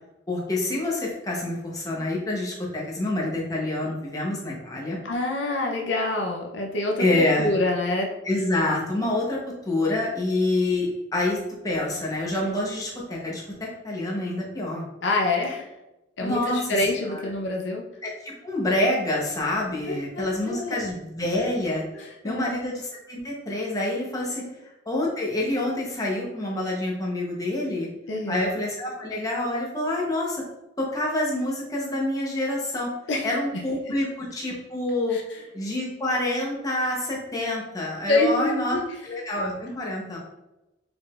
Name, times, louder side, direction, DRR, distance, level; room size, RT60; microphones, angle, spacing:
voice 1, 0.3-5.0 7.0-7.5 8.2-11.4 11.6-14.8 16.2-16.8 17.1-17.2 18.0-24.4 24.9-27.9 28.3-30.4 30.8-32.9 33.2-35.2 35.5-38.8 39.0-40.2, left 1 dB, 20° left, -3 dB, 0.9 m, -27 dB
voice 2, 5.0-8.1 15.0-15.7 16.2-17.9 19.9-20.8 21.9-22.5 28.1-28.5 33.1-33.3 33.9-34.0 35.1-35.2 38.1-38.8, left 2 dB, 65° left, 1 dB, 0.6 m, -26 dB
4.8 x 3.8 x 2.4 m, 0.97 s
head